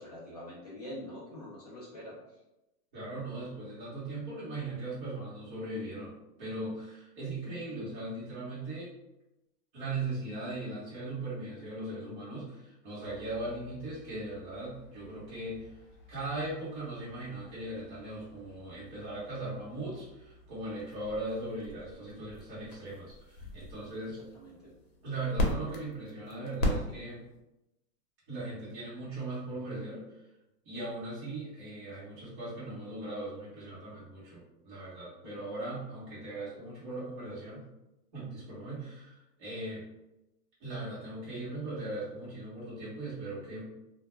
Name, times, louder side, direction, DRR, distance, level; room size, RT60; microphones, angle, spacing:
voice 1, 0.0-2.1 24.3-24.7 35.2-35.4, left 1 dB, 30° left, -8 dB, 0.4 m, -45 dB
voice 2, 2.9-6.1 6.4-8.9 9.7-15.7 16.1-24.2 25.0-27.2 28.3-30.0 30.6-37.7 38.1-39.8 40.6-43.6, right 2 dB, 30° right, -10 dB, 0.9 m, -39 dB
sound 1, 13.0-27.4, left 1 dB, 60° left, 0.8 m, -40 dB
2.2 x 2.2 x 2.9 m, 0.93 s
hypercardioid pair, 165°, 49 cm